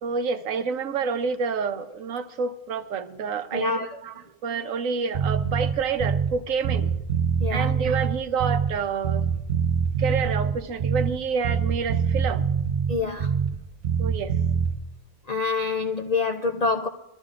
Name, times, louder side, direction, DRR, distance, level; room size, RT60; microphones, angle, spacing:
voice 1, 0.0-4.1 4.4-6.9 7.5-9.3 10.0-12.4 14.0-14.3, right 5 dB, 90° right, 1.2 m, -28 dB
voice 2, 3.5-4.0 7.4-7.7 12.9-13.3 15.3-16.9, left 4 dB, 60° left, 0.4 m, -26 dB
Bass guitar, 5.1-6.4 6.6-8.8 9.0-11.2 11.4-13.6 13.8-14.7, right 6 dB, 45° right, 0.7 m, -24 dB
23.5 x 13.0 x 2.5 m
omnidirectional pair, 1.3 m